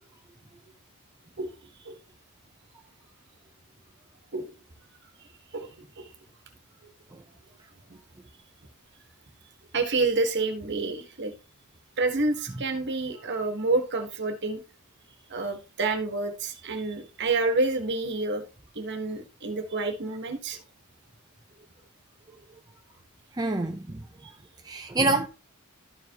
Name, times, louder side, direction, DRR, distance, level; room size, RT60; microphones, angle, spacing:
voice 1, 9.7-11.3 12.0-14.6 15.3-18.4 18.7-20.6 24.2-24.3, right 3 dB, 50° right, 1.4 m, -28 dB
voice 2, 23.4-24.0 24.6-25.3, right 2 dB, 20° right, 0.6 m, -27 dB
12.5 x 4.8 x 2.9 m
head